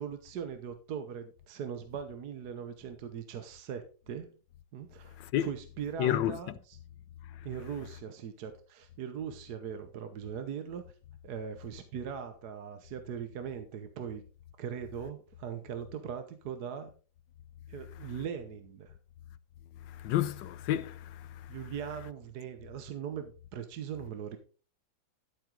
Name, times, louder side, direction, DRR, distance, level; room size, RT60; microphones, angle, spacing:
voice 1, 0.0-4.3 4.7-6.8 7.4-10.8 11.2-14.2 14.6-16.9 17.7-18.9 21.5-24.4, right 8 dB, 60° right, 1.4 m, -40 dB
voice 2, 5.2-5.5 6.0-6.4 7.3-7.5 19.9-21.5, left 12 dB, 75° left, 1.4 m, -31 dB
13.0 x 7.6 x 3.9 m
omnidirectional pair, 2.0 m